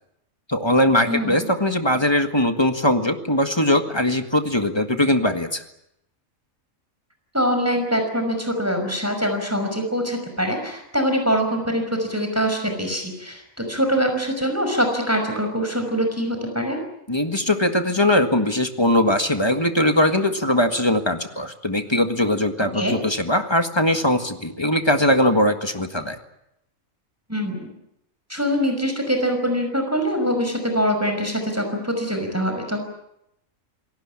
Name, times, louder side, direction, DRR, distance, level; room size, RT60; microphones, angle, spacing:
voice 1, 0.5-5.6 17.1-26.2, left 1 dB, 20° left, 6 dB, 1.7 m, -20 dB
voice 2, 7.3-16.8 22.7-22.9 27.3-27.7 28.3-32.8, equal, 10° right, 4 dB, 5.5 m, -23 dB
28.0 x 18.5 x 8.8 m, 0.82 s
omnidirectional pair, 1.4 m